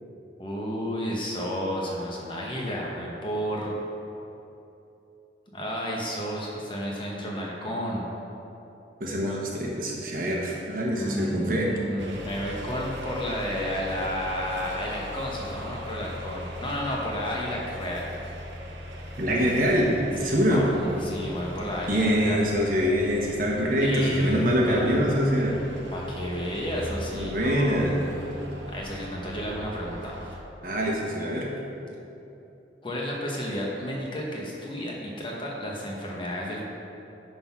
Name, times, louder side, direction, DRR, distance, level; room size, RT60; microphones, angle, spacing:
voice 1, 0.4-3.8 5.5-8.1 9.2-9.6 10.9-18.1 20.2-22.4 23.8-25.1 25.9-27.8 28.3-30.2 32.8-36.7, equal, 25° left, -3 dB, 1.1 m, -32 dB
voice 2, 9.0-11.7 19.2-20.7 21.9-25.5 27.1-27.9 30.6-31.5, equal, 45° right, -3 dB, 1.2 m, -24 dB
sound 1, 12.0-30.4, equal, 75° right, 1.0 m, -39 dB
9.8 x 4.0 x 5.9 m, 2.9 s
head